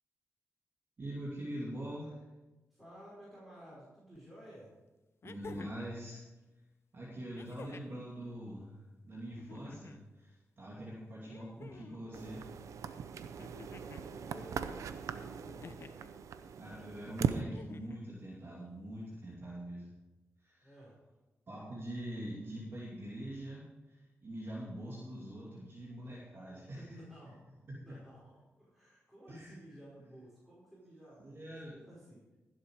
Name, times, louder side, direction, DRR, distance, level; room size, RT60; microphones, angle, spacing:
voice 1, 1.0-2.2 5.2-6.2 6.9-8.7 9.0-12.5 16.6-19.9 20.4-20.8 21.5-27.0 27.7-28.0 29.3-29.6 31.2-31.8, right 1 dB, 50° right, -5 dB, 2.8 m, -44 dB
voice 2, 2.7-4.7 13.7-15.6 20.6-20.9 26.0-26.2 26.8-27.4 27.7-32.4, right 1 dB, ahead, -7 dB, 4.9 m, -54 dB
sound 1, 4.1-4.2 5.2-5.9 7.3-8.0 9.3-10.0 11.2-12.0 13.4-14.1 15.6-16.1 17.4-18.0 19.3-19.4, left 5 dB, 55° left, 0.7 m, -51 dB
sound 2, 12.1-17.4, right 7 dB, 85° right, 0.7 m, -39 dB
15.5 x 7.6 x 4.8 m, 1.1 s
cardioid pair, 70°, 5 cm